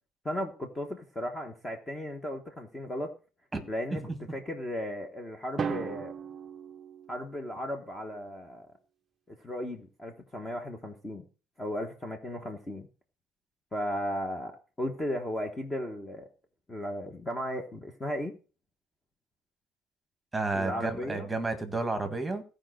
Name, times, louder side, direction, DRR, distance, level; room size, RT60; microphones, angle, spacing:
voice 1, 0.2-3.1 3.7-4.0 4.3-6.1 7.1-8.7 9.3-11.2 11.6-12.9 13.7-16.3 16.7-18.3 20.5-21.3, left 1 dB, 10° left, 4 dB, 1.1 m, -35 dB
Drum, 5.6-7.6, right 6 dB, 25° right, 0.7 m, -36 dB
voice 2, 20.3-22.4, right 3 dB, 5° right, 6 dB, 1.5 m, -31 dB
15.5 x 5.1 x 6.3 m, 0.35 s
cardioid pair, 175°, 0 cm